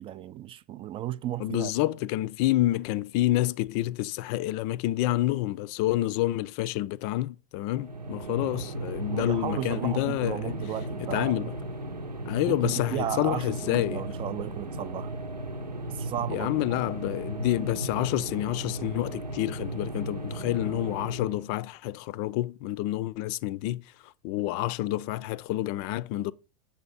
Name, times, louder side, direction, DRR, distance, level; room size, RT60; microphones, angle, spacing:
voice 1, 0.0-1.7 9.1-11.5 12.5-15.1 15.9-16.6, right 12 dB, 25° right, 0.4 m, -34 dB
voice 2, 1.4-10.5 11.1-11.5 12.3-14.0 16.3-26.3, left 15 dB, 40° left, 0.4 m, -28 dB
sound 1, 7.7-21.5, right 1 dB, 90° right, 0.9 m, -36 dB
8.6 x 6.8 x 4.1 m
figure-of-eight pair, 85°, 20 cm